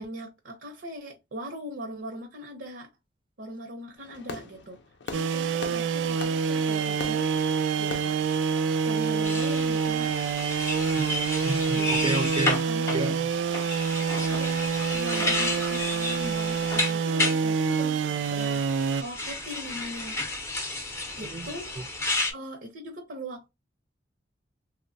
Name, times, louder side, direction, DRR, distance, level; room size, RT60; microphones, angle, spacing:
voice 1, 0.0-2.9 3.4-8.2 8.8-10.2 11.7-12.2 12.7-13.0 14.3-18.6 19.0-20.2 21.2-21.8 22.3-23.5, equal, 70° right, 0.7 m, -40 dB
Fireworks, 4.0-9.6, left 4 dB, 70° left, 0.5 m, -43 dB
sound 1, 5.1-19.0, right 6 dB, 90° right, 0.3 m, -27 dB
sound 2, 9.2-17.4 18.2-22.3, left 2 dB, 15° left, 0.6 m, -32 dB
voice 2, 10.9-12.6 12.9-13.3 21.2-21.5, right 2 dB, 30° right, 0.5 m, -32 dB
3.0 x 2.1 x 2.5 m
head